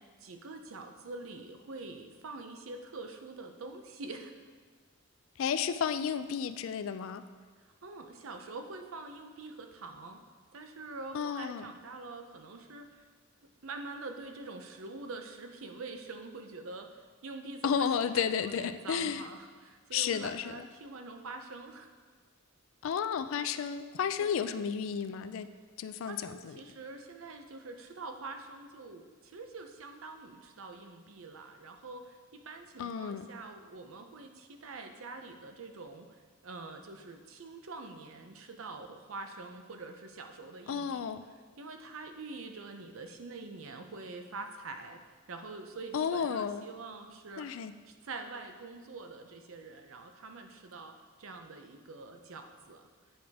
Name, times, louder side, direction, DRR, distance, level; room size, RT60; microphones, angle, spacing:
voice 1, 0.0-4.3 7.8-10.2 10.5-13.1 13.6-16.9 17.2-21.9 24.2-24.3 26.1-36.2 36.4-41.1 41.6-45.0 45.3-47.5 47.9-52.9, right 3 dB, 70° right, 5 dB, 0.6 m, -45 dB
voice 2, 5.4-7.2 11.1-11.7 17.6-19.2 19.9-20.7 22.8-25.5 25.8-26.6 32.8-33.3 40.7-41.2 45.9-46.7 47.4-47.7, left 7 dB, 65° left, 12 dB, 0.3 m, -32 dB
8.9 x 5.0 x 3.5 m, 1.5 s
head